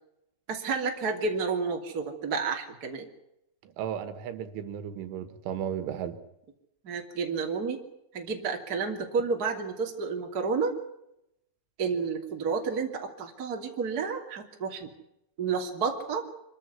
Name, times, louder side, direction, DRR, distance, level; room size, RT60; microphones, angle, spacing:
voice 1, 0.5-3.1 6.8-7.8 8.1-10.7 11.8-14.9 15.4-16.3, right 5 dB, 25° right, 2 dB, 2.3 m, -30 dB
voice 2, 3.6-6.2, right 9 dB, 80° right, 10 dB, 4.0 m, -35 dB
26.5 x 14.0 x 9.6 m, 0.82 s
omnidirectional pair, 5.6 m